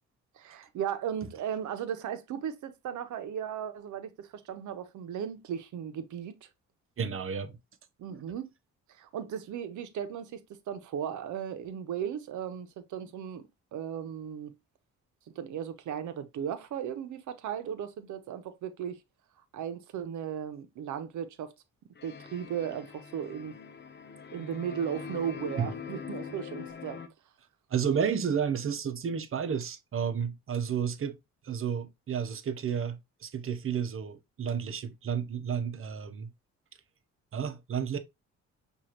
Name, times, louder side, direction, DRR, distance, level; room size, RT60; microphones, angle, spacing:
voice 1, 0.4-6.3 8.0-8.5 8.9-14.5 15.4-19.0 19.5-21.5 22.0-23.6 24.3-27.0, right 8 dB, 75° right, 1.0 m, -36 dB
voice 2, 7.0-7.5 8.1-8.2 25.6-25.7 27.7-31.2 31.4-36.3 37.3-38.0, right 7 dB, 45° right, 0.9 m, -31 dB
sound 1, 22.0-27.1, left 6 dB, 35° left, 0.9 m, -43 dB
6.4 x 2.7 x 2.9 m
cardioid pair, 90°, 30 cm